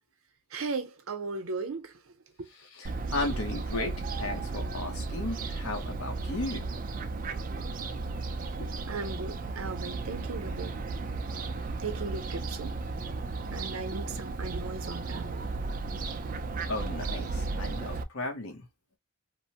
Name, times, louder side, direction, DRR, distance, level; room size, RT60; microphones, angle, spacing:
voice 1, 0.5-1.9 8.9-10.8 11.8-12.7 13.5-15.5, right 4 dB, 80° right, 0.7 m, -37 dB
voice 2, 2.5-6.7 8.6-8.7 16.7-18.6, left 2 dB, 90° left, 0.7 m, -35 dB
Fowl, 2.8-18.0, right 3 dB, 40° right, 0.3 m, -34 dB
2.9 x 2.0 x 2.8 m
head